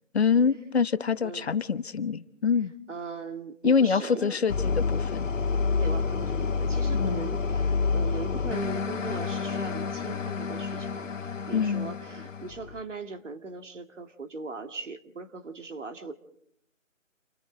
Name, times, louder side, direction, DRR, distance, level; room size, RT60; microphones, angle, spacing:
voice 1, 0.1-2.7 3.6-5.3 6.9-7.3 11.5-11.9, left 6 dB, 50° left, 1.0 m, -25 dB
voice 2, 2.9-4.4 5.8-11.1 11.5-16.1, right 4 dB, 65° right, 2.3 m, -39 dB
sound 1, 4.5-12.8, left 5 dB, 70° left, 1.9 m, -29 dB
28.0 x 19.5 x 5.0 m
figure-of-eight pair, 165°, 39 cm